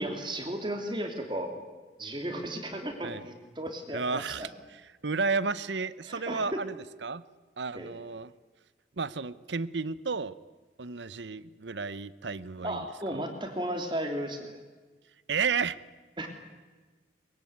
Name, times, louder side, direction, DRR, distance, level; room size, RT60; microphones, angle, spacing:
voice 1, 0.0-1.5 2.0-4.5 6.1-6.4 7.7-7.9 12.6-14.5 16.2-16.3, right 1 dB, 25° right, 4 dB, 2.9 m, -34 dB
voice 2, 3.9-6.8 7.0-7.2 7.6-8.3 9.0-10.3 10.8-13.2 15.3-15.8, right 4 dB, 90° right, 16 dB, 0.9 m, -32 dB
23.0 x 21.5 x 9.6 m, 1.3 s
head